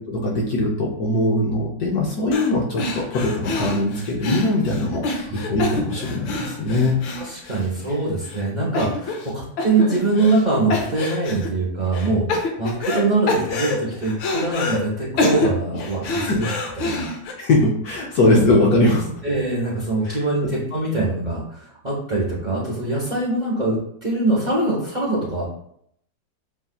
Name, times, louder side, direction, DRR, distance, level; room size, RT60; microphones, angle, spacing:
voice 1, 0.0-7.0 16.1-16.4 17.4-19.1 20.0-20.2, left 2 dB, 65° left, -2 dB, 1.1 m, -21 dB
sound 1, 2.3-2.5 2.8-8.0 8.3-8.4 8.7-9.3 9.6-10.4 10.7-11.5 11.9-13.0 13.3-14.8 15.2-17.3, left 2 dB, 80° left, 1.5 m, -26 dB
voice 2, 7.2-16.5 16.8-17.1 19.2-25.4, right 2 dB, 30° right, -6 dB, 1.0 m, -23 dB
7.0 x 2.7 x 2.3 m, 0.69 s
omnidirectional pair, 2.0 m